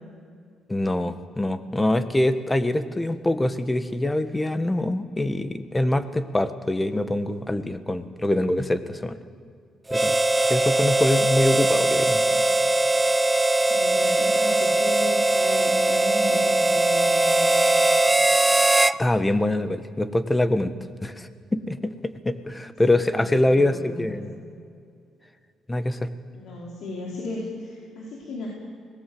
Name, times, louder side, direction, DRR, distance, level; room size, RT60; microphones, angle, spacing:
voice 1, 0.7-9.2 9.9-10.2 10.5-12.2 19.0-20.7 21.0-21.9 22.2-24.3 25.7-26.1, left 1 dB, 15° left, 11 dB, 1.5 m, -24 dB
Harmonica, 9.9-19.0, right 2 dB, 15° right, 0.6 m, -20 dB
voice 2, 11.6-12.7 13.7-17.9 22.8-24.3 26.3-28.5, left 2 dB, 80° left, -3 dB, 4.5 m, -36 dB
25.0 x 19.5 x 7.9 m, 2.3 s
cardioid pair, 90°, 0 cm